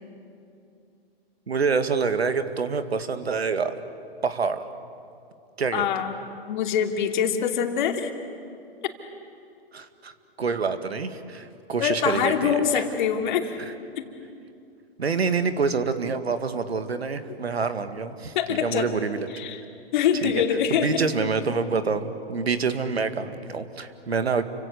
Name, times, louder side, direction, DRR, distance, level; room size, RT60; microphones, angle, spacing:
voice 1, 1.5-3.8 4.2-4.7 5.6-5.9 9.7-12.8 15.0-19.3 20.2-20.4 20.7-24.4, right 5 dB, 85° right, 10 dB, 2.0 m, -27 dB
voice 2, 5.7-6.2 6.5-8.1 11.8-13.6 14.0-14.1 18.3-18.9 19.3-19.6 19.9-21.0, left 8 dB, 50° left, 4 dB, 2.8 m, -24 dB
29.5 x 25.0 x 8.1 m, 2.5 s
hypercardioid pair, 125°, 31 cm